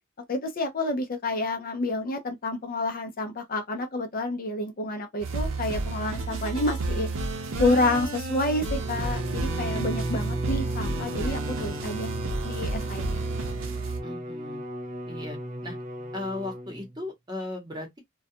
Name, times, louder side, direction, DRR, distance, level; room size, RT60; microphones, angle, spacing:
voice 1, 0.3-7.1 7.6-12.1 12.4-13.2, left 2 dB, 45° left, 0.5 m, -29 dB
sound 1, 5.2-14.0, right 3 dB, 85° right, 0.6 m, -31 dB
Bowed string instrument, 8.7-17.0, equal, 35° right, 0.4 m, -36 dB
voice 2, 14.0-14.6 15.1-15.8 16.1-18.0, left 2 dB, 20° right, 1.0 m, -37 dB
2.3 x 2.2 x 2.6 m
head